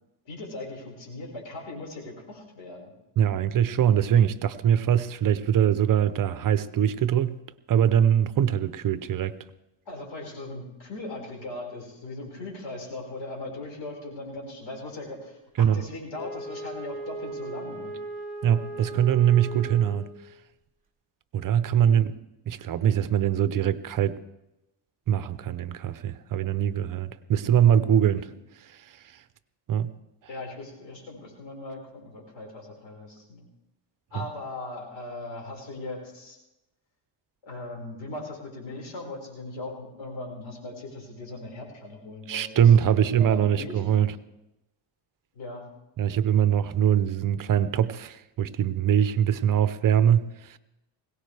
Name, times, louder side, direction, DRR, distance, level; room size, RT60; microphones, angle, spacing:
voice 1, 0.2-2.9 9.9-17.9 21.7-22.0 30.3-33.5 34.1-36.4 37.4-44.0 45.3-45.6, left 2 dB, 90° left, 5.1 m, -39 dB
voice 2, 3.2-7.4 7.7-9.4 15.6-15.8 18.4-20.1 21.3-22.1 22.5-24.2 25.1-28.3 28.7-28.8 29.7-29.9 34.1-34.3 42.3-44.1 46.0-50.6, right 9 dB, 45° right, 0.7 m, -22 dB
Wind instrument woodwind instrument, 16.1-20.3, right 1 dB, 20° right, 2.9 m, -38 dB
21.0 x 17.5 x 3.4 m
cardioid pair, 130°, 44 cm